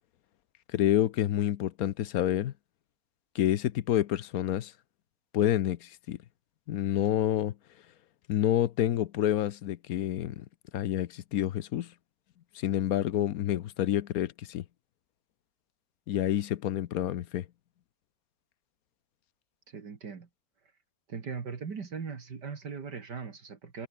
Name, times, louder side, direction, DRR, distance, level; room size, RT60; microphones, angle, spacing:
voice 1, 0.7-2.5 3.3-4.7 5.3-6.2 6.7-7.5 8.3-10.4 10.7-11.9 12.5-14.6 16.1-17.5, left 12 dB, 60° left, 1.0 m, -28 dB
voice 2, 19.7-20.3 21.1-23.9, right 5 dB, 65° right, 2.8 m, -39 dB
omnidirectional pair, 2.0 m